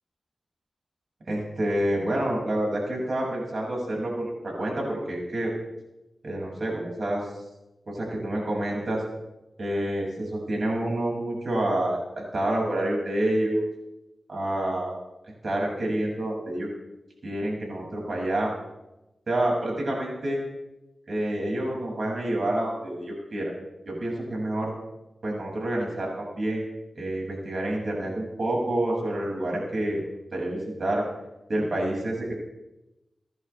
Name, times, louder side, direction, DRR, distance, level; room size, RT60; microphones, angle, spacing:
voice 1, 1.3-5.5 6.2-7.3 7.9-9.0 9.6-13.7 14.3-15.0 15.4-16.7 17.2-18.6 19.3-20.4 21.1-23.5 23.8-24.7 25.2-26.6 26.9-30.0 30.3-31.0 31.5-32.3, right 1 dB, 65° right, -2 dB, 6.4 m, -28 dB
23.5 x 11.0 x 3.5 m, 0.98 s
cardioid pair, 40°, 0 cm